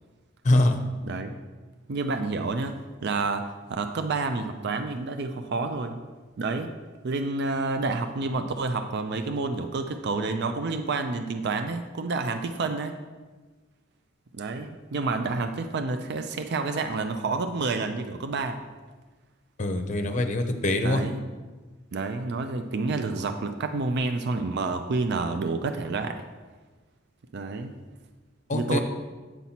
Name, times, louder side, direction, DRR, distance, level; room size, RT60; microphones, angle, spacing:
voice 1, 0.4-0.8 19.6-21.0 28.5-28.8, left 1 dB, 40° left, 6 dB, 0.7 m, -23 dB
voice 2, 1.9-2.8 3.0-6.0 6.4-6.7 7.0-13.0 14.3-18.6 20.8-21.2 21.9-26.2 27.3-27.7 28.5-28.8, right 3 dB, 55° right, 7 dB, 0.4 m, -29 dB
8.3 x 4.2 x 5.8 m, 1.3 s
head